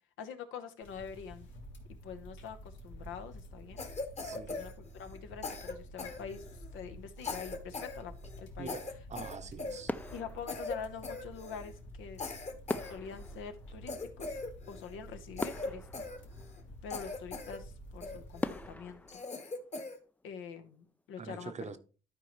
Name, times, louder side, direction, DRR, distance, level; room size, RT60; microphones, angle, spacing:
voice 1, 0.2-1.5 2.0-3.8 4.3-6.5 6.7-8.7 10.1-12.2 12.9-14.3 14.7-15.9 16.8-19.2 20.2-21.8, left 6 dB, 85° left, 1.0 m, -45 dB
sound 1, 0.8-19.2, equal, 70° left, 1.6 m, -50 dB
Cough, 3.8-5.2 5.4-6.7 7.2-8.0 8.2-8.4 8.7-10.2 10.5-10.8 11.0-11.7 12.2-13.4 13.9-14.9 15.4-16.6 16.9-17.6 18.0-18.6 19.1-20.0, left 3 dB, 35° left, 1.2 m, -41 dB
voice 2, 4.2-4.6 8.6-9.9 21.2-21.8, right 5 dB, 35° right, 0.7 m, -44 dB
sound 2, 9.4-9.6 9.9-11.3 12.7-14.6 15.0-15.1 15.4-17.0 17.5-17.6 18.4-20.3 20.6-20.9, left 2 dB, 10° left, 0.3 m, -42 dB
12.0 x 4.5 x 3.1 m
cardioid pair, 90°, 20 cm